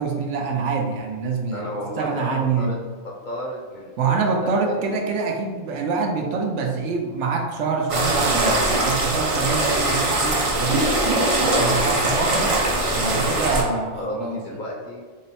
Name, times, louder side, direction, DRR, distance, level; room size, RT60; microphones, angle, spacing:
voice 1, 0.0-1.7 2.0-2.7 4.0-10.9 11.6-12.6 12.9-14.4, right 4 dB, 80° right, 2 dB, 0.9 m, -25 dB
voice 2, 1.5-2.8 3.0-5.0 12.8-15.0, left 1 dB, 50° left, -2 dB, 0.7 m, -33 dB
sound 1, 7.9-13.6, right 2 dB, 45° right, 0.4 m, -21 dB
3.7 x 2.1 x 4.0 m, 1.5 s
omnidirectional pair, 1.2 m